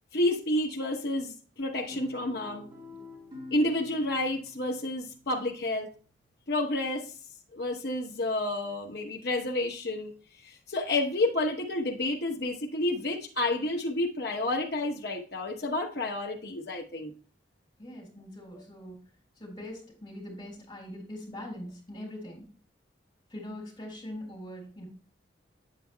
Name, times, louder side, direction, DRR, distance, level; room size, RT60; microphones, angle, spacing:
voice 1, 0.1-2.7 3.5-5.9 6.5-7.1 7.5-17.1, left 1 dB, 55° left, 0 dB, 0.9 m, -30 dB
Guitar, 1.8-6.2, left 2 dB, 25° right, 3.8 m, -47 dB
voice 2, 17.8-19.0 19.4-22.5 23.3-24.8, left 1 dB, 25° left, -2 dB, 4.2 m, -42 dB
8.7 x 8.4 x 2.2 m, 0.40 s
head